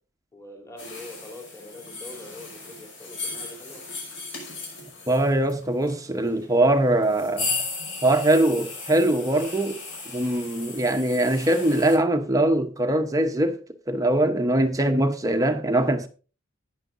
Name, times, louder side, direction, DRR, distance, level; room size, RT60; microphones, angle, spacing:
voice 1, 0.3-3.8, left 1 dB, 15° left, 3.4 m, -43 dB
sound 1, 0.8-12.0, left 3 dB, 65° left, 5.5 m, -36 dB
voice 2, 5.1-7.5 8.0-9.8 10.1-13.6 13.9-16.1, right 1 dB, 15° right, 0.9 m, -22 dB
15.5 x 10.0 x 2.6 m
head